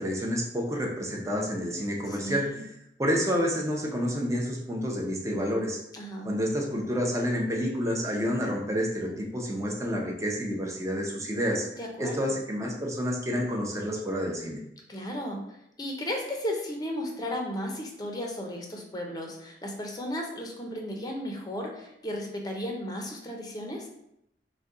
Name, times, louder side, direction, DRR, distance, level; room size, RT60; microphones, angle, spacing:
voice 1, 0.0-2.7 3.0-5.8 6.2-11.7 12.0-14.6, equal, 15° right, 0 dB, 0.6 m, -29 dB
voice 2, 2.0-2.6 5.9-6.3 11.8-12.2 14.9-23.9, left 1 dB, 20° left, 1 dB, 0.6 m, -35 dB
4.0 x 2.2 x 3.6 m, 0.78 s
head